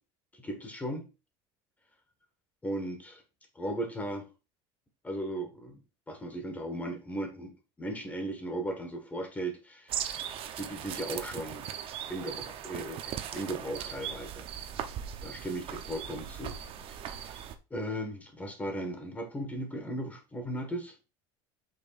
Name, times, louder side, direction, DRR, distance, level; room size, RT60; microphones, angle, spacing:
voice 1, 0.3-1.1 2.6-3.2 3.5-4.2 5.0-5.8 6.1-10.1 10.5-11.7 12.1-14.5 15.2-16.6 16.9-17.3 17.7-20.9, right 1 dB, 10° left, 5 dB, 1.5 m, -37 dB
sound 1, 9.9-17.6, right 9 dB, 45° right, 0.8 m, -39 dB
8.0 x 5.3 x 2.5 m, 0.30 s
cardioid pair, 140°, 13 cm